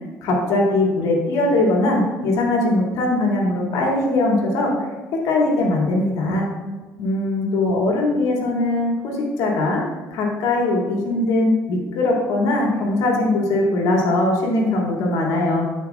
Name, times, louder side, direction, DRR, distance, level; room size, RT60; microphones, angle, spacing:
voice 1, 0.2-4.7 5.2-6.5 7.0-9.8 10.1-15.6, left 2 dB, 80° left, -1 dB, 2.4 m, -20 dB
14.0 x 5.8 x 2.4 m, 1.3 s
supercardioid pair, 80°, 6 cm